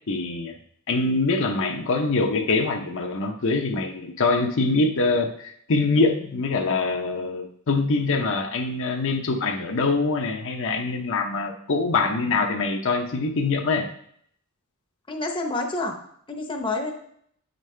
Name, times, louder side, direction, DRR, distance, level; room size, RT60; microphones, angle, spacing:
voice 1, 0.1-0.6 0.9-13.9, left 3 dB, 60° left, 4 dB, 0.7 m, -24 dB
voice 2, 15.1-15.9 16.3-16.9, left 2 dB, 25° left, 2 dB, 0.8 m, -28 dB
8.4 x 5.3 x 3.2 m, 0.67 s
head